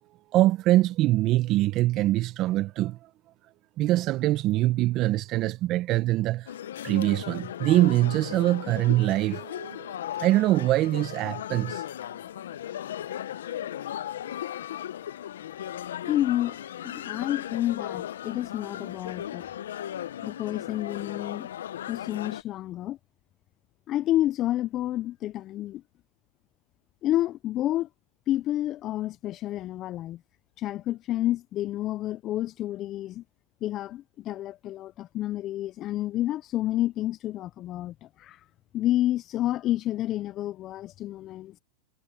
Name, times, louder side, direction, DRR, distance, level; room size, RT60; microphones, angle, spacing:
voice 1, 0.3-3.1 3.8-6.5 6.8-11.8, right 16 dB, 45° right, 1.1 m, -24 dB
restaurant ambience, 6.5-22.4, left 11 dB, 80° left, 0.9 m, -37 dB
voice 2, 16.1-19.5 20.2-21.5 21.9-23.0 23.9-25.8 27.0-27.9 28.3-30.2 30.6-33.2 33.6-38.4 38.7-41.6, left 14 dB, 40° left, 0.6 m, -29 dB
hypercardioid pair, 105°, 0 cm